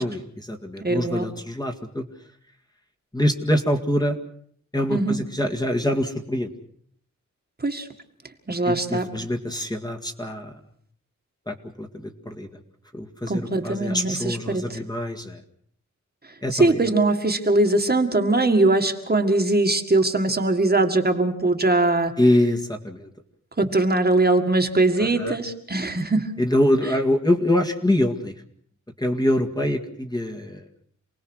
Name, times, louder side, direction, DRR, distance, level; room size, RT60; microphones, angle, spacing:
voice 1, 0.0-2.0 3.1-4.2 4.7-6.5 8.7-10.6 11.5-12.6 12.9-15.4 16.4-16.8 22.2-23.1 25.0-25.4 26.4-28.3 29.0-30.6, left 1 dB, 15° left, 2 dB, 1.9 m, -24 dB
voice 2, 0.8-1.2 4.9-5.2 7.6-7.9 8.5-9.1 13.3-14.8 16.5-22.1 23.6-26.3, right 2 dB, 30° right, 4 dB, 2.0 m, -21 dB
28.0 x 19.5 x 6.4 m, 0.64 s
wide cardioid pair, 110°, 30 cm